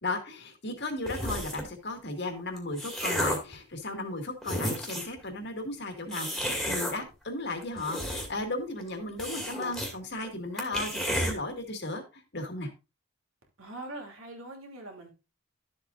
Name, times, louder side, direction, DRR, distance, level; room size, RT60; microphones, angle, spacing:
voice 1, 0.0-12.7, left 2 dB, 50° left, 1.9 m, -35 dB
sound 1, 1.1-1.7 2.4-3.5 4.1-4.2 4.4-5.2 6.1-6.9 7.6-8.5 8.8-8.9 9.2-9.9 10.2-10.3 10.6-11.3, equal, ahead, 2.1 m, -32 dB
voice 2, 13.6-15.1, right 2 dB, 75° right, 2.8 m, -42 dB
12.0 x 7.7 x 2.5 m
head